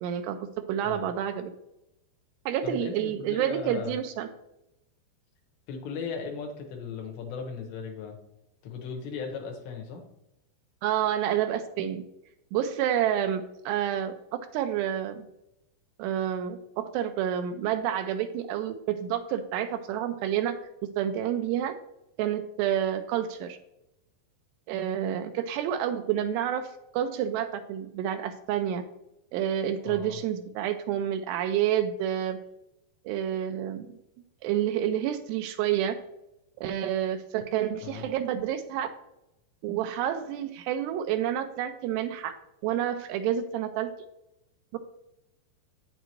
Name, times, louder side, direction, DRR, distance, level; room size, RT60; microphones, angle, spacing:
voice 1, 0.0-1.5 2.5-4.3 10.8-12.0 12.5-15.3 16.0-20.6 21.0-21.7 22.2-23.6 24.7-26.7 26.9-28.8 29.3-32.4 33.1-34.0 34.4-36.0 36.6-38.9 39.6-42.4 42.6-43.9 44.7-44.8, right 10 dB, 85° right, 8 dB, 2.6 m, -29 dB
voice 2, 2.6-4.0 5.7-8.2 8.6-10.0 29.9-30.2 37.8-38.1, left 5 dB, 75° left, 2 dB, 3.5 m, -37 dB
9.0 x 7.5 x 3.1 m, 0.85 s
omnidirectional pair, 5.1 m